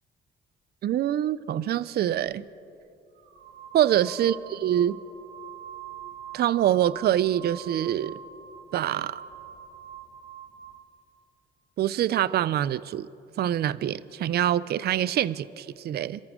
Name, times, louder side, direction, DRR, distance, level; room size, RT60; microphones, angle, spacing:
voice 1, 0.8-2.4 3.7-5.0 6.3-8.2 8.7-9.2 11.8-13.1 13.4-16.2, right 11 dB, 55° right, 18 dB, 0.4 m, -25 dB
sound 1, 3.1-10.9, right 9 dB, 80° right, 1.7 m, -44 dB
27.0 x 13.5 x 3.7 m, 2.7 s
cardioid pair, 90°, 20 cm